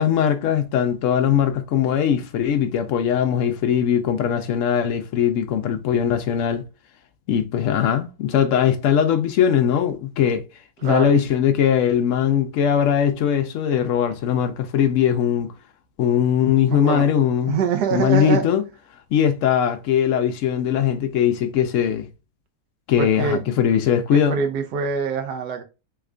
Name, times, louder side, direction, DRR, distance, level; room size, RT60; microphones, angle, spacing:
voice 1, 0.0-6.6 7.3-10.4 10.8-15.5 16.0-17.6 17.9-18.6 19.1-22.1 22.9-24.4, left 8 dB, 75° left, 0.7 m, -20 dB
voice 2, 10.8-11.2 16.7-17.1 17.5-18.5 23.0-23.5 24.1-25.6, right 6 dB, 75° right, 1.3 m, -24 dB
3.5 x 2.4 x 3.2 m
omnidirectional pair, 1.8 m